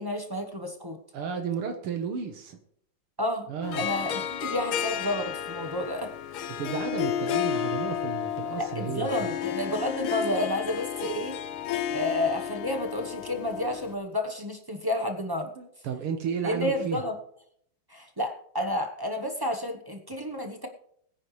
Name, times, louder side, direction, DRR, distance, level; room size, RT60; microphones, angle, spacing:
voice 1, 0.0-1.0 3.2-3.5 3.7-6.1 8.6-11.4 11.9-15.5 16.4-17.1 17.9-20.7, left 1 dB, 25° right, 3 dB, 0.5 m, -30 dB
voice 2, 1.1-2.6 3.5-3.9 6.6-9.3 11.9-12.0 15.6-17.0, right 7 dB, 85° right, 5 dB, 2.2 m, -33 dB
Harp, 3.6-13.9, left 10 dB, 75° left, 1.7 m, -32 dB
21.5 x 9.9 x 3.3 m, 0.69 s
omnidirectional pair, 2.4 m